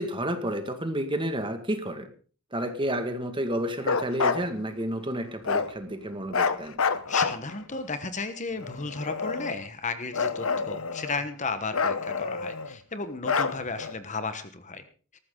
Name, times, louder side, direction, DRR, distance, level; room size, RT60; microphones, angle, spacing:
voice 1, 0.0-2.1 2.5-6.8, right 1 dB, 20° right, 7 dB, 2.0 m, -30 dB
Bark, 3.8-4.4 5.4-5.7 6.3-7.8 8.6-9.7 10.1-11.3 11.7-12.7 13.2-13.9, left 5 dB, 65° left, 1.0 m, -28 dB
voice 2, 7.1-14.8, left 4 dB, 35° left, 10 dB, 1.2 m, -34 dB
19.0 x 14.5 x 3.9 m, 0.39 s
head